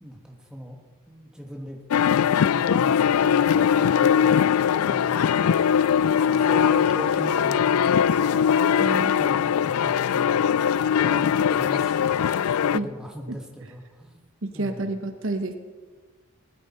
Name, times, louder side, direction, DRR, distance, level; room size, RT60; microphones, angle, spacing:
voice 1, 0.0-0.8 1.1-5.8 6.2-10.6 11.0-14.2 14.5-14.9, equal, 5° right, 1 dB, 1.4 m, -39 dB
sound 1, 1.9-12.8, left 8 dB, 80° left, 0.4 m, -21 dB
voice 2, 8.8-9.2 12.7-12.9 14.4-15.6, right 2 dB, 60° right, 7 dB, 1.0 m, -29 dB
18.5 x 12.5 x 4.3 m, 1.5 s
head